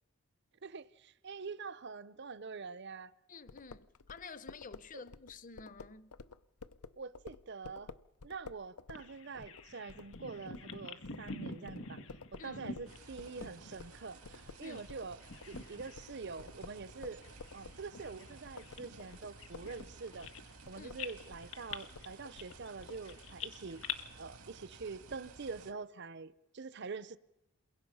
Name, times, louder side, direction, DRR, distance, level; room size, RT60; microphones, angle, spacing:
voice 1, 0.6-3.1 7.0-7.9 8.2-12.0 12.3-15.2 15.5-17.2 17.5-20.3 20.7-23.8 24.1-27.2, right 4 dB, 50° right, 0.7 m, -45 dB
voice 2, 3.3-6.1 12.4-12.6 14.6-14.8 20.8-20.9, left 4 dB, 35° left, 0.8 m, -50 dB
sound 1, 3.5-14.0 14.2-23.0, left 4 dB, 85° left, 0.7 m, -52 dB
Bird vocalization bird call bird song, 9.0-14.9 15.2-16.1 16.4-16.6 17.2-20.7 21.0-24.0, left 5 dB, 65° left, 1.7 m, -47 dB
sound 2, 12.9-25.7, right 3 dB, 90° right, 2.1 m, -55 dB
28.5 x 22.0 x 5.6 m
head